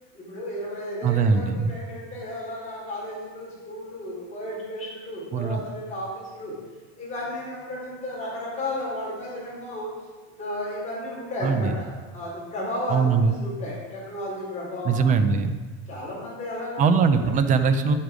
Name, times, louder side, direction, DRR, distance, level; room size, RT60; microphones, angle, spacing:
voice 1, 0.1-6.5 7.0-9.9 10.4-15.0 15.9-17.3, left 1 dB, 15° left, -6 dB, 3.9 m, -33 dB
voice 2, 1.0-1.7 5.3-5.6 11.4-11.7 12.9-13.4 14.8-15.6 16.8-18.0, right 5 dB, 20° right, 9 dB, 0.4 m, -21 dB
9.9 x 8.1 x 5.1 m, 1.3 s
supercardioid pair, 160°, 41 cm